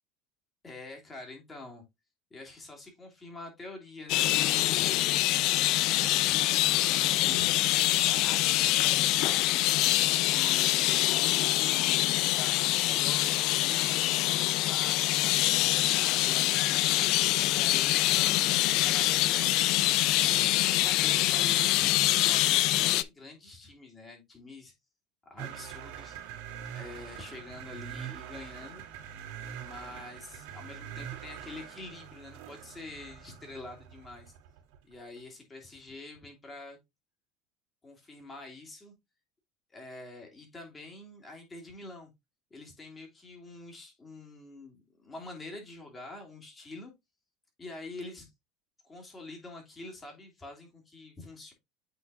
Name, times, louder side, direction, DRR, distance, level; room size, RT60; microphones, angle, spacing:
voice 1, 0.6-1.8 2.3-5.2 5.7-9.2 9.8-15.4 15.9-19.5 20.2-24.7 25.3-26.4 26.7-28.8 29.6-34.3 34.8-36.8 37.8-38.9 39.7-42.1 42.5-46.9 47.6-48.3 48.8-51.5, left 2 dB, 20° left, 2.8 m, -46 dB
sound 1, 4.1-23.0, left 16 dB, 55° left, 0.4 m, -25 dB
sound 2, 25.4-34.8, right 9 dB, 80° right, 2.4 m, -44 dB
8.3 x 4.5 x 2.7 m
cardioid pair, 140°, 0 cm